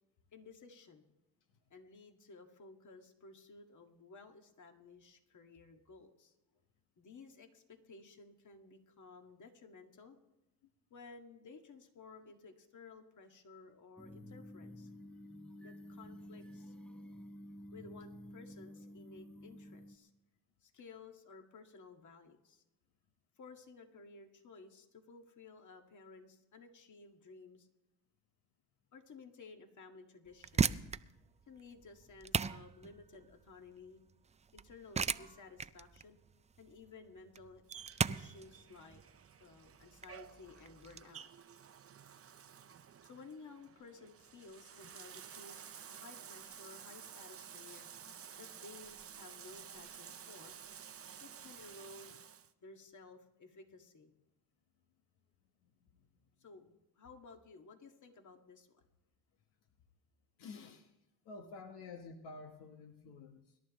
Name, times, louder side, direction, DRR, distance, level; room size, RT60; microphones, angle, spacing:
voice 1, 0.3-1.1 1.7-6.3 7.0-10.2 10.9-14.9 15.6-16.7 17.7-20.1 20.6-22.6 23.4-27.7 28.9-30.8 31.5-34.0 34.5-36.2 36.6-37.6 38.1-39.0 39.4-41.3 43.0-47.9 48.4-50.6 51.2-52.2 52.6-54.1 56.4-56.7 56.9-58.8, left 4 dB, 45° left, 4 dB, 2.0 m, -56 dB
sound 1, 14.0-20.0, equal, ahead, 0.9 m, -51 dB
sound 2, 30.3-41.0, right 6 dB, 20° right, 0.4 m, -38 dB
Bathtub (filling or washing), 37.7-52.5, right 8 dB, 35° right, 0.8 m, -53 dB
voice 2, 55.6-56.1 60.4-60.9 61.2-63.6, left 4 dB, 80° left, 5 dB, 1.3 m, -51 dB
24.5 x 11.5 x 3.1 m, 0.94 s
supercardioid pair, 75°, 40 cm